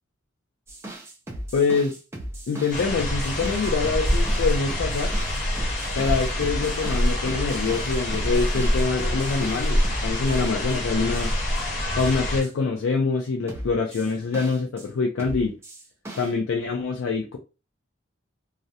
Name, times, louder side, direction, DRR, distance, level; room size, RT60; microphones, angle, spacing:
sound 1, 0.7-10.8 11.1-11.6 12.0-12.5 13.5-14.9 15.2-16.3, right 1 dB, 15° right, 0.5 m, -37 dB
voice 1, 1.5-1.9 2.5-5.4 6.0-11.3 11.9-15.5 16.2-17.4, left 4 dB, 75° left, 1 dB, 0.4 m, -25 dB
sound 2, 2.7-12.4, equal, 45° left, 1.0 m, -26 dB
2.3 x 2.0 x 2.7 m, 0.30 s
head